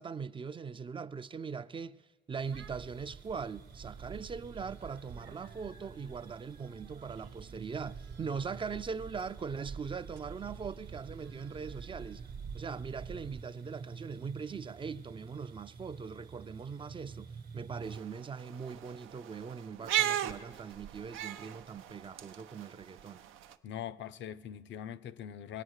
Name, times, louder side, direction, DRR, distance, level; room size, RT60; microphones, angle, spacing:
voice 1, 0.0-2.0 2.3-12.2 12.5-23.2, right 5 dB, 25° right, 0.4 m, -41 dB
sound 1, 2.4-18.0, right 5 dB, 50° right, 1.1 m, -51 dB
sound 2, 2.5-13.4, right 6 dB, 65° right, 0.9 m, -49 dB
sound 3, 17.8-23.5, right 12 dB, 90° right, 0.5 m, -37 dB
voice 2, 23.6-25.6, left 10 dB, 65° left, 0.5 m, -42 dB
21.0 x 8.8 x 6.4 m
cardioid pair, 90°, 20 cm